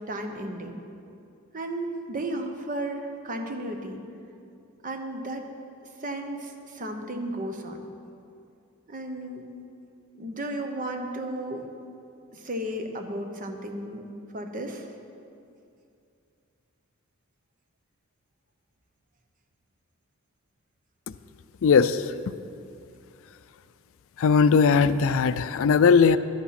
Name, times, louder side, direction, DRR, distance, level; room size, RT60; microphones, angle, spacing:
voice 1, 0.1-0.8 1.5-4.0 4.8-5.5 6.0-7.8 8.9-9.5 10.2-11.6 12.3-14.0 14.3-14.9, right 1 dB, 40° right, 4 dB, 1.0 m, -34 dB
voice 2, 21.6-22.0 24.2-26.2, left 5 dB, 65° left, 14 dB, 0.4 m, -19 dB
11.5 x 8.4 x 5.8 m, 2.6 s
head